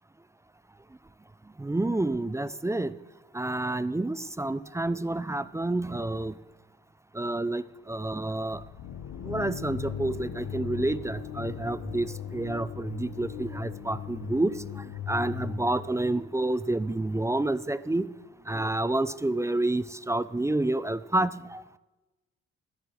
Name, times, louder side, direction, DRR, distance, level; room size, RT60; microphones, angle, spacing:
voice 1, 1.6-2.9 3.3-6.3 7.1-8.6 9.2-18.1 18.5-21.6, right 2 dB, 10° right, 15 dB, 0.4 m, -29 dB
sound 1, 8.5-16.4, left 8 dB, 65° left, 1.2 m, -38 dB
12.5 x 9.9 x 6.4 m, 1.1 s
cardioid pair, 90°, 30 cm